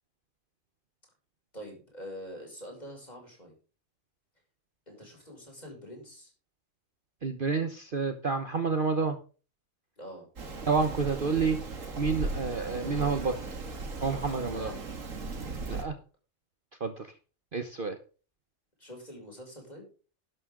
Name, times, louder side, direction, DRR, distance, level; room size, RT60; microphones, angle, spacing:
voice 1, 1.5-3.5 4.9-6.3 10.0-10.3 14.3-14.9 15.7-15.9 18.8-19.9, equal, 30° left, 0 dB, 6.2 m, -45 dB
voice 2, 7.2-9.2 10.7-11.6 12.0-13.4 14.0-14.7 15.7-15.9 16.8-17.1 17.5-18.0, right 4 dB, 40° right, 8 dB, 1.1 m, -29 dB
Rain, 10.4-15.8, right 3 dB, 70° right, 2.3 m, -37 dB
12.5 x 11.0 x 3.8 m, 0.36 s
omnidirectional pair, 1.4 m